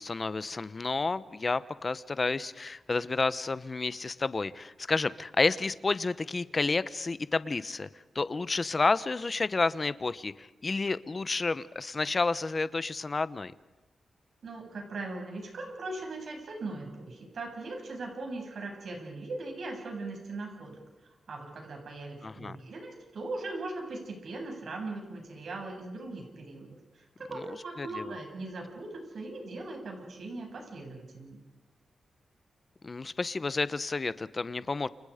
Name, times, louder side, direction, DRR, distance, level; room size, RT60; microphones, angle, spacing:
voice 1, 0.0-7.9 8.1-13.5 22.2-22.6 27.8-28.1 32.8-34.9, left 3 dB, 35° left, 15 dB, 1.0 m, -30 dB
voice 2, 14.4-20.8 21.3-31.4, right 2 dB, 70° right, 2 dB, 7.6 m, -39 dB
30.0 x 27.0 x 5.1 m, 1.1 s
wide cardioid pair, 95°, 0 cm